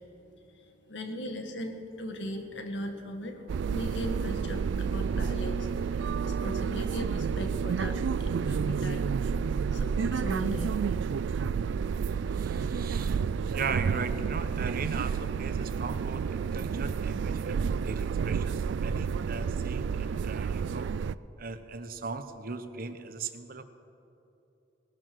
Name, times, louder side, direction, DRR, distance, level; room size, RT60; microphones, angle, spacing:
voice 1, 0.5-9.0 9.7-11.0, left 1 dB, 90° left, 5 dB, 1.9 m, -39 dB
sound 1, 3.5-21.1, right 6 dB, 85° right, 0.3 m, -30 dB
voice 2, 12.3-20.9 21.4-23.6, right 4 dB, 55° right, 10 dB, 0.9 m, -38 dB
19.0 x 12.0 x 6.3 m, 2.9 s
head